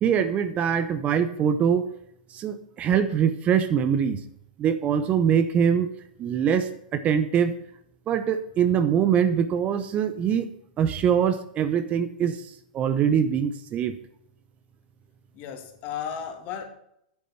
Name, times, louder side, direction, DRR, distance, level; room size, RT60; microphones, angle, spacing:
voice 1, 0.0-1.9 2.3-4.2 4.6-5.9 6.2-7.5 8.1-10.5 10.8-12.5 12.7-13.9, right 8 dB, 30° right, 11 dB, 0.9 m, -23 dB
voice 2, 15.3-16.6, left 8 dB, 40° left, 5 dB, 2.3 m, -34 dB
10.0 x 8.4 x 5.9 m, 0.74 s
hypercardioid pair, 115°, 5 cm